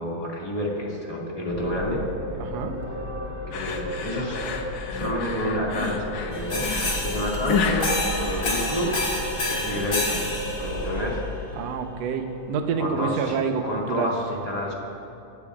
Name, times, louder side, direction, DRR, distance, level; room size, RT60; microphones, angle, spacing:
voice 1, 0.0-2.0 3.5-4.4 4.9-6.7 7.0-7.9 8.2-9.0 9.5-10.3 10.6-11.2 12.8-13.4 13.6-14.7, equal, 15° left, -4 dB, 1.4 m, -29 dB
sound 1, 1.5-11.2, equal, 10° right, 0.9 m, -33 dB
voice 2, 2.4-2.8 9.4-9.9 11.5-14.1, right 6 dB, 65° right, 5 dB, 1.7 m, -28 dB
sound 2, 3.5-9.0, left 6 dB, 65° left, 2.0 m, -30 dB
sound 3, 6.3-11.1, left 2 dB, 35° left, 3.2 m, -29 dB
27.0 x 15.5 x 2.5 m, 2.7 s
omnidirectional pair, 4.0 m